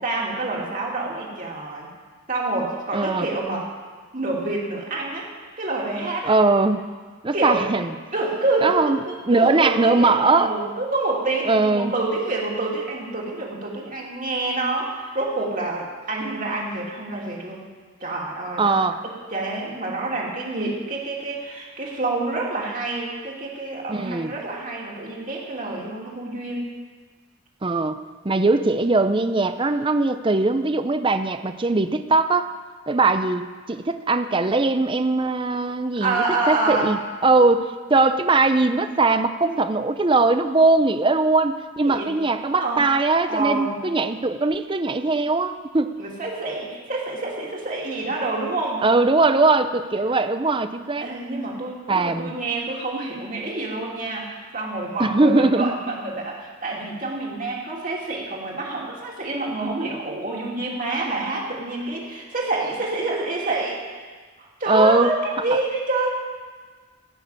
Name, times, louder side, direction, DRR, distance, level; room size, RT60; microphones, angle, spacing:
voice 1, 0.0-1.9 2.3-3.7 4.1-5.3 5.6-6.3 7.3-7.6 8.1-17.6 18.0-18.7 19.0-26.7 36.0-36.9 41.8-42.1 42.6-42.8 43.3-43.8 46.0-48.8 50.1-50.2 51.0-63.8 64.4-66.2, right 2 dB, 40° right, -3 dB, 2.7 m, -27 dB
voice 2, 2.9-3.3 6.3-6.8 7.2-7.9 8.6-9.0 9.3-10.5 11.5-11.9 18.6-19.0 23.9-24.3 27.6-28.0 28.2-32.5 32.9-45.9 48.8-51.1 51.9-52.3 55.0-55.8 64.7-65.1 65.5-65.6, right 3 dB, 25° right, 10 dB, 0.5 m, -20 dB
15.5 x 6.6 x 8.9 m, 1.5 s
head